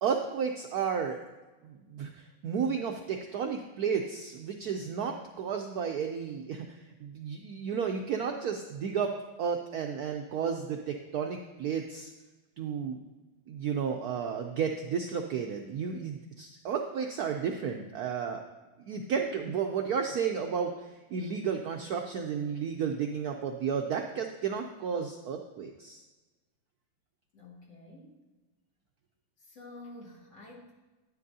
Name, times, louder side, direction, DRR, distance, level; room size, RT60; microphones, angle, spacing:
voice 1, 0.0-1.2 1.6-9.1 9.4-12.1 12.6-13.0 13.5-18.4 18.8-26.0, right 6 dB, 90° right, 3 dB, 0.8 m, -32 dB
voice 2, 27.3-28.2 29.4-30.7, left 2 dB, 55° left, -3 dB, 2.4 m, -49 dB
11.0 x 9.6 x 2.7 m, 1.2 s
omnidirectional pair, 2.3 m